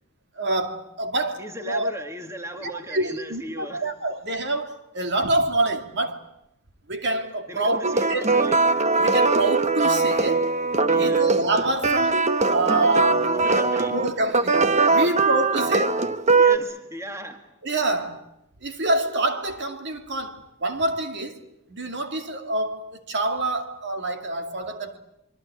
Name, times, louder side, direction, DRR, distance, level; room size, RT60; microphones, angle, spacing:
voice 1, 0.4-1.9 2.6-6.2 6.9-7.8 8.1-8.3 9.0-10.4 11.0-13.3 13.9-16.0 17.6-18.2 18.6-21.4 21.7-25.0, right 2 dB, 55° right, 2.4 m, -26 dB
voice 2, 1.4-3.9 7.5-8.6 10.9-11.3 13.3-13.9 14.9-15.2 15.5-15.8 16.3-17.5, equal, 15° right, 1.9 m, -37 dB
sound 1, 7.8-16.6, right 3 dB, 30° right, 1.0 m, -21 dB
25.0 x 23.5 x 8.5 m
head